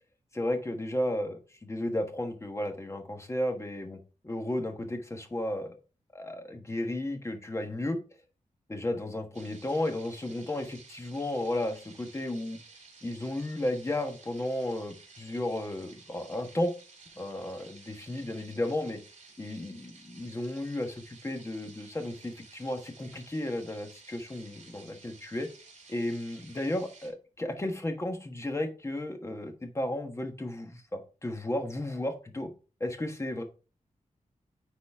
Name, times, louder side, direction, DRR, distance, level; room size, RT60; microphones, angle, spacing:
voice 1, 0.3-5.7 6.1-8.0 8.7-12.6 13.0-16.7 17.2-19.0 19.4-25.5 25.9-32.5 32.8-33.4, left 1 dB, 20° left, 4 dB, 1.3 m, -33 dB
sound 1, 9.3-27.1, right 4 dB, 65° right, 3.0 m, -54 dB
9.9 x 4.2 x 3.5 m, 0.35 s
wide cardioid pair, 145°, 13 cm